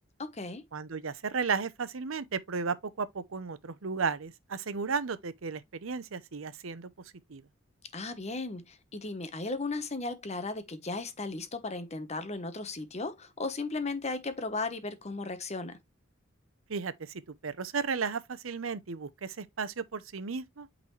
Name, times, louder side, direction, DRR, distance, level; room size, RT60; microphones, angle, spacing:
voice 1, 0.2-0.6 7.9-15.8, left 3 dB, 35° left, 1.0 m, -36 dB
voice 2, 0.7-6.9 7.3-7.4 16.7-20.7, right 5 dB, 75° right, 0.7 m, -34 dB
8.6 x 4.0 x 3.2 m
head